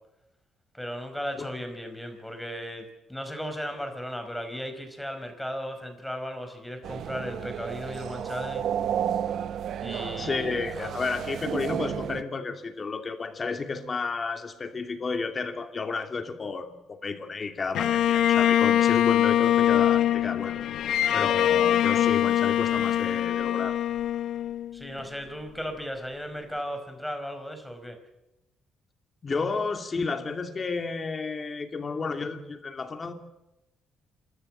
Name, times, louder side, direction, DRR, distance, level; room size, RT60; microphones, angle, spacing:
voice 1, 0.7-8.7 9.8-10.9 24.7-28.0, equal, 5° left, 6 dB, 4.9 m, -36 dB
sound 1, 6.8-12.2, right 9 dB, 70° right, 0.7 m, -32 dB
voice 2, 10.2-20.6 21.1-23.8 29.2-33.1, left 4 dB, 35° left, 6 dB, 2.8 m, -32 dB
Bowed string instrument, 17.7-25.0, left 11 dB, 80° left, 0.9 m, -23 dB
27.5 x 13.5 x 9.0 m, 0.96 s
cardioid pair, 90°, 0 cm